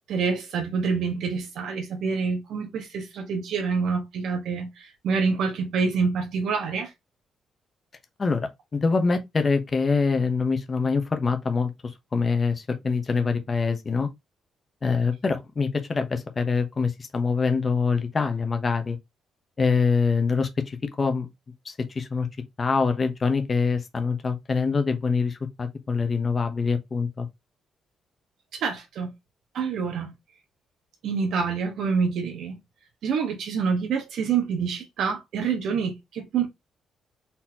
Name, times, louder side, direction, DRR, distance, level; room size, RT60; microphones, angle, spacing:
voice 1, 0.1-6.9 28.5-29.1 29.5-30.1 31.0-32.6 33.0-36.5, right 5 dB, 65° right, 1.2 m, -27 dB
voice 2, 8.2-14.1 14.8-19.0 19.6-21.3 21.6-22.3 22.6-27.3, left 4 dB, 25° left, 0.8 m, -25 dB
4.1 x 4.0 x 2.8 m
cardioid pair, 175°, 0 cm